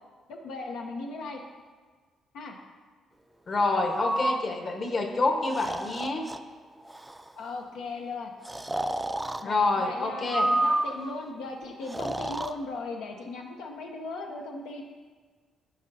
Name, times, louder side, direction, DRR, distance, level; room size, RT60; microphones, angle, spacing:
voice 1, 0.3-1.4 2.3-2.6 7.4-8.3 9.4-14.8, left 3 dB, 85° left, 2 dB, 0.6 m, -37 dB
voice 2, 3.5-6.3 9.4-10.5, left 3 dB, 45° left, 3 dB, 1.1 m, -27 dB
Breathing, 3.9-4.4 5.4-6.4 6.9-7.3 8.4-9.4 10.3-11.1 11.8-12.5, right 1 dB, 10° right, 0.4 m, -29 dB
12.5 x 5.4 x 2.7 m, 1.5 s
cardioid pair, 90°, 0 cm